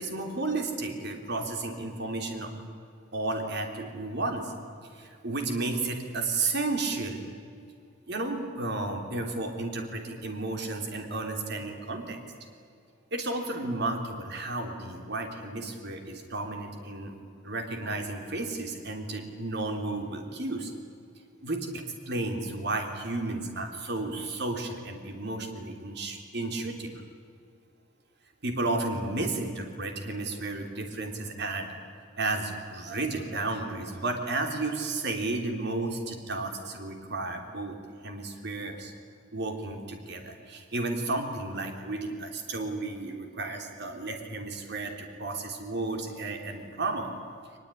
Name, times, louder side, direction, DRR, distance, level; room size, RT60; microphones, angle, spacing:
voice 1, 0.0-2.5 3.1-4.5 4.9-7.2 8.1-12.2 13.1-17.1 17.4-20.7 21.4-26.9 28.4-31.7 32.2-37.7 38.0-38.9 39.3-47.1, right 2 dB, 60° right, 4 dB, 3.4 m, -33 dB
22.5 x 21.0 x 9.9 m, 2.4 s
head